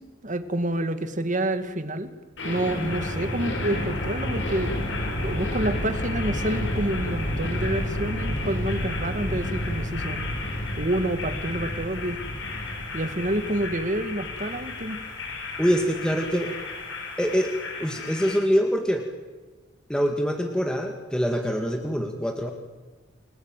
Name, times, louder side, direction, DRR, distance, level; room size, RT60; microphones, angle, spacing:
voice 1, 0.0-2.1 2.4-4.8 5.0-10.3 10.8-12.2 12.9-15.0, right 1 dB, 40° right, 10 dB, 2.2 m, -28 dB
sound 1, 2.4-18.4, left 1 dB, 70° left, 7.6 m, -31 dB
voice 2, 15.6-16.5 17.2-17.5 17.8-19.0 19.9-22.5, equal, 5° left, 3 dB, 2.1 m, -24 dB
30.0 x 21.5 x 9.2 m, 1.3 s
head